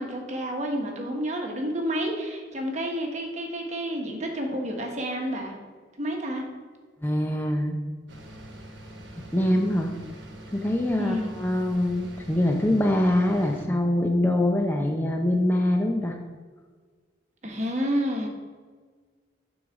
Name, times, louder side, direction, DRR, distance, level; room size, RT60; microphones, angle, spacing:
voice 1, 0.0-5.5 6.0-6.4 11.0-11.3 17.4-18.3, equal, 40° right, 1 dB, 1.2 m, -29 dB
voice 2, 7.0-7.8 9.3-9.9 10.5-16.2, left 1 dB, 10° left, 2 dB, 0.5 m, -24 dB
sound 1, 8.1-13.7, right 1 dB, 80° right, 1.0 m, -44 dB
7.9 x 4.0 x 5.9 m, 1.5 s
head